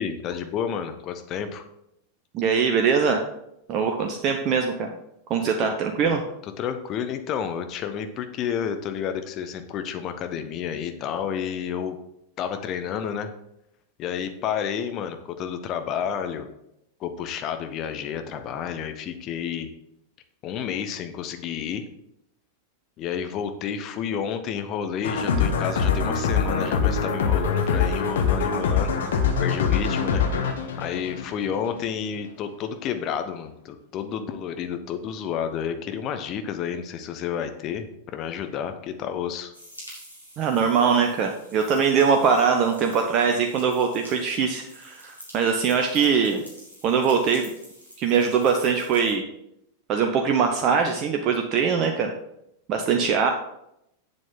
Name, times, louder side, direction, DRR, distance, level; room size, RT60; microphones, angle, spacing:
voice 1, 0.0-1.6 5.6-5.7 6.0-6.1 6.6-12.0 12.4-13.3 14.0-16.5 17.0-19.7 20.4-21.8 23.0-28.9 29.4-30.2 30.8-39.5, left 8 dB, 35° left, 8 dB, 0.9 m, -30 dB
voice 2, 2.3-3.2 3.7-4.9 5.3-6.2 40.4-46.4 46.8-47.5 48.0-49.2 49.9-52.1 52.7-53.3, right 6 dB, 35° right, 4 dB, 0.8 m, -22 dB
sound 1, 25.0-31.8, left 6 dB, 60° left, 1.0 m, -24 dB
sound 2, 39.5-49.1, equal, 90° left, 2.6 m, -47 dB
7.8 x 7.4 x 3.7 m, 0.79 s
figure-of-eight pair, 90°, 0 cm